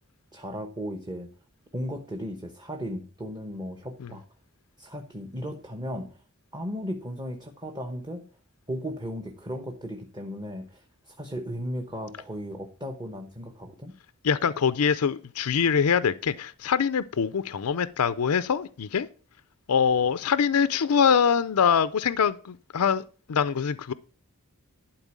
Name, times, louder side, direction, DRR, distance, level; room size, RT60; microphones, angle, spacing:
voice 1, 0.3-1.3 1.7-4.2 4.8-6.2 6.5-8.2 8.7-13.9, equal, 20° right, 1.0 m, -36 dB
voice 2, 14.2-19.1 19.7-23.0 23.3-23.9, left 7 dB, 90° left, 0.5 m, -24 dB
12.0 x 4.3 x 7.4 m
head